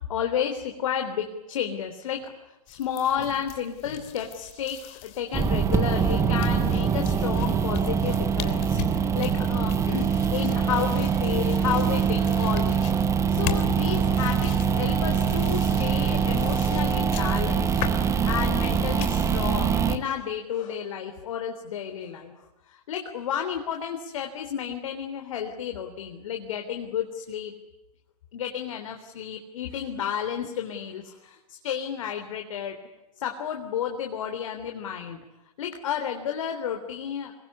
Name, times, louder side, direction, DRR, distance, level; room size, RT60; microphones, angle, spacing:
voice 1, 0.1-2.3 2.7-12.9 13.3-22.3 22.7-27.5 28.3-32.8 33.2-35.2 35.6-37.3, left 8 dB, 60° left, 4 dB, 3.6 m, -31 dB
sound 1, 2.7-19.5, left 11 dB, 35° left, 3.3 m, -40 dB
sound 2, 5.3-20.0, right 7 dB, 15° right, 1.9 m, -24 dB
26.0 x 22.5 x 9.8 m, 0.96 s
hypercardioid pair, 125°, 19 cm